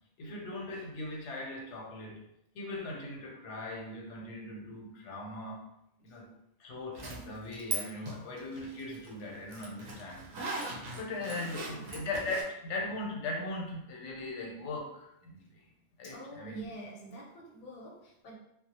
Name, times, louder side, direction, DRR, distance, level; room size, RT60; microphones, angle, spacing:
voice 1, 0.2-2.2 2.5-5.6 6.0-6.2 6.6-10.2 10.9-15.4 16.0-16.7, left 2 dB, 85° left, -1 dB, 0.9 m, -39 dB
Zipper (clothing), 6.9-7.8 8.1-12.4, right 3 dB, 55° right, 0.6 m, -39 dB
voice 2, 11.2-12.0 16.0-18.4, right 1 dB, 55° left, -2 dB, 0.7 m, -48 dB
2.3 x 2.0 x 2.8 m, 0.78 s
omnidirectional pair, 1.2 m